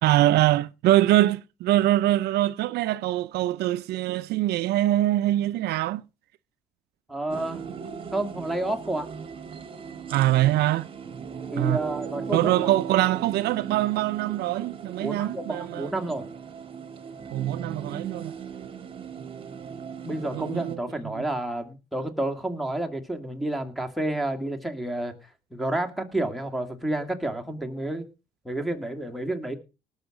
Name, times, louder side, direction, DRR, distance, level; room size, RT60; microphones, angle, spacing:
voice 1, 0.0-6.0 10.1-10.9 11.6-11.8 12.3-15.9 17.3-18.3 20.3-20.8 21.1-21.2, right 15 dB, 75° right, 0.5 m, -23 dB
voice 2, 7.1-7.6 8.1-9.1 11.5-12.7 15.0-16.3 20.0-25.1 25.5-28.1 28.4-29.6, right 1 dB, ahead, 2.2 m, -30 dB
sound 1, 7.3-20.8, right 6 dB, 30° right, 1.6 m, -38 dB
19.0 x 6.5 x 5.0 m
cardioid pair, 110°, 17 cm